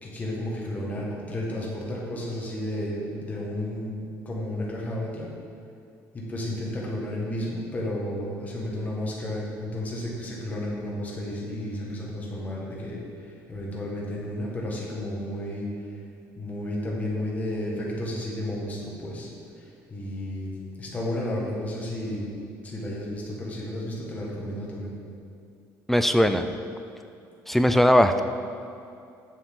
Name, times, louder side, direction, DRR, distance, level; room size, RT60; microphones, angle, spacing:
voice 1, 0.0-5.3 6.1-15.9 16.4-19.3 19.6-20.5 20.8-22.3 22.6-24.9, left 1 dB, 20° left, -4 dB, 1.6 m, -32 dB
voice 2, 25.9-26.5 27.5-28.2, equal, 5° left, 8 dB, 0.3 m, -19 dB
8.2 x 7.1 x 3.8 m, 2.5 s
cardioid pair, 135°, 7 cm